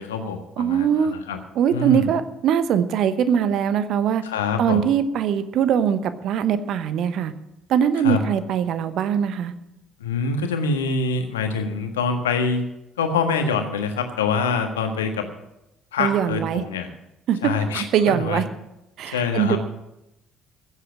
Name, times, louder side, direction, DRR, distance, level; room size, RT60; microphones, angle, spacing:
voice 1, 0.0-1.4 1.7-2.1 4.2-4.9 8.0-8.2 10.0-12.6 13.0-15.2 15.9-16.9 17.4-18.4 19.1-19.6, left 4 dB, 75° left, 6 dB, 1.5 m, -25 dB
voice 2, 0.6-1.1 1.5-4.2 4.6-7.3 7.7-9.5 16.0-16.6 17.3-17.4 17.7-18.4 19.0-19.6, right 8 dB, 50° right, 12 dB, 1.0 m, -21 dB
15.5 x 8.3 x 7.4 m, 0.89 s
figure-of-eight pair, 50°, 0 cm